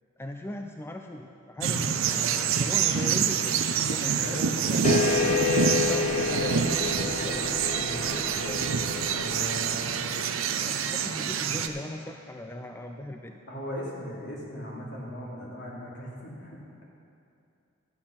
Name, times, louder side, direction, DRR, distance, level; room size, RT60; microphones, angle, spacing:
voice 1, 0.2-3.6 3.9-4.8 5.8-8.9 10.6-13.4, left 1 dB, 10° left, 4 dB, 0.4 m, -39 dB
sound 1, 1.6-11.7, right 7 dB, 75° right, 0.6 m, -27 dB
sound 2, 4.8-9.9, left 4 dB, 35° left, 0.7 m, -29 dB
voice 2, 9.1-10.1 13.5-16.8, equal, 60° left, -4 dB, 2.6 m, -38 dB
12.0 x 8.5 x 5.8 m, 2.5 s
head